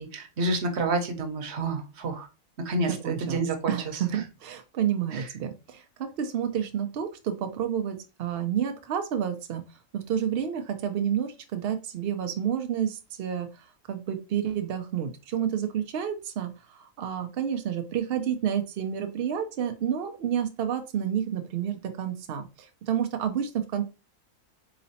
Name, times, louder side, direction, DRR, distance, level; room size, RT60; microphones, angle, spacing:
voice 1, 0.0-2.3 2.6-4.0 5.1-5.2, right 2 dB, 55° right, 5 dB, 0.9 m, -29 dB
voice 2, 3.0-9.6 9.9-23.9, right 9 dB, 85° right, 6 dB, 0.5 m, -30 dB
4.0 x 3.1 x 2.7 m, 0.29 s
omnidirectional pair, 1.6 m